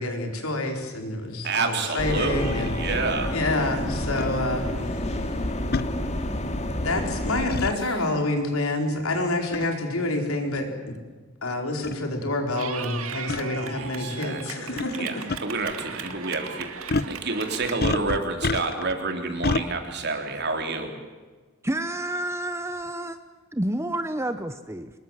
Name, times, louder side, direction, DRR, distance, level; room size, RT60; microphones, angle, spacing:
voice 1, 0.0-2.7 3.3-5.1 6.8-10.9 11.4-15.3, left 2 dB, 80° left, 4 dB, 4.5 m, -28 dB
voice 2, 1.4-3.4 13.8-14.6 14.9-20.9, right 3 dB, 50° right, 4 dB, 3.7 m, -29 dB
sound 1, 2.0-7.5, left 1 dB, 30° left, 2.3 m, -29 dB
sound 2, 4.2-4.3 5.7-5.9 7.5-7.8 9.5-9.7 10.6-10.7 11.5-11.6 11.8-12.0 13.3-13.4 14.8-15.0 15.3-15.4 16.9-17.2 17.8-18.9 19.4-19.7, left 3 dB, 45° left, 0.8 m, -26 dB
Clapping / Cheering, 12.6-17.7, right 6 dB, 75° right, 2.2 m, -37 dB
voice 3, 21.6-23.2 23.5-24.9, right 1 dB, 15° right, 10 dB, 0.8 m, -29 dB
25.0 x 21.5 x 7.5 m, 1.3 s
head